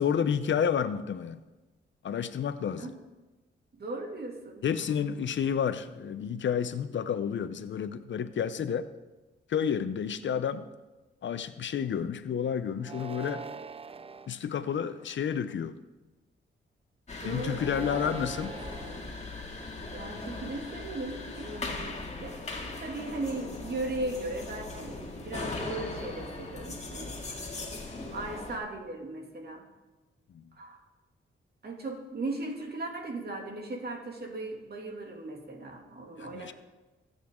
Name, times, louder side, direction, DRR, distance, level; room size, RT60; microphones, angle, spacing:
voice 1, 0.0-1.4 2.0-2.9 4.6-8.9 9.5-10.7 11.2-13.4 14.3-15.8 17.2-18.6 30.3-30.4 36.2-36.5, left 8 dB, 60° left, 12 dB, 0.7 m, -30 dB
voice 2, 3.7-4.6 17.2-18.0 19.9-27.2 27.8-29.7 30.5-30.9 31.6-36.5, right 2 dB, 50° right, 2 dB, 2.4 m, -37 dB
sound 1, 12.8-14.3 15.0-15.5 17.5-19.0, right 5 dB, 25° right, 0.5 m, -42 dB
sound 2, 17.1-28.6, left 3 dB, 30° left, 2.2 m, -39 dB
23.0 x 8.3 x 3.7 m, 1.1 s
cardioid pair, 95°, 21 cm